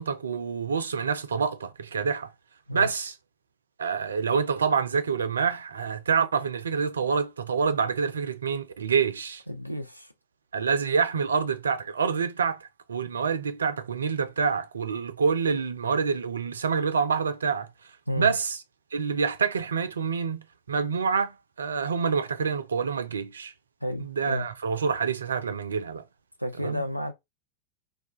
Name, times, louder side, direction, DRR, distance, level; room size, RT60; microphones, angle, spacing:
voice 1, 0.0-2.3 2.7-3.1 3.8-9.4 10.5-17.7 18.2-18.6 18.9-23.5 24.0-26.0 26.6-26.8, right 5 dB, 70° right, 0.4 m, -27 dB
voice 2, 9.5-10.1 18.1-18.4 23.8-24.5 26.4-27.1, left 1 dB, 90° left, 0.4 m, -31 dB
2.3 x 2.2 x 2.9 m
figure-of-eight pair, 90°, 0 cm